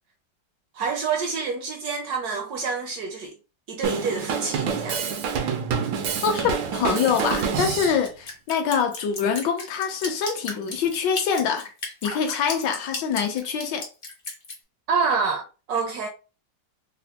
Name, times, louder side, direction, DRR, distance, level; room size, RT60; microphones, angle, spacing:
voice 1, 0.7-3.3 3.7-5.0 14.9-16.1, right 5 dB, 70° right, 0.9 m, -27 dB
Drum kit, 3.8-8.0, right 6 dB, 90° right, 1.4 m, -27 dB
voice 2, 6.2-11.7 12.0-13.9, left 7 dB, 75° left, 1.3 m, -25 dB
Drip, 6.9-14.6, left 3 dB, 45° left, 0.7 m, -35 dB
4.0 x 2.0 x 2.8 m
omnidirectional pair, 2.0 m